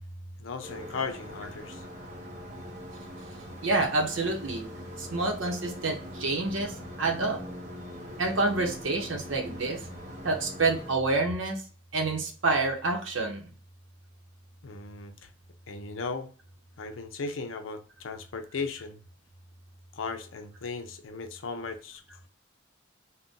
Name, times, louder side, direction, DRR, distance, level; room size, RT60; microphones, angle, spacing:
voice 1, 0.4-1.8 14.6-15.3 15.7-16.3 16.8-19.0 19.9-22.3, left 4 dB, 90° left, 0.5 m, -37 dB
sound 1, 0.6-11.0, equal, 40° right, 0.7 m, -42 dB
voice 2, 3.6-4.6 5.0-6.7 7.0-7.4 8.2-9.8 10.2-11.6 11.9-13.5, right 3 dB, 80° right, 0.8 m, -28 dB
2.6 x 2.1 x 3.6 m
head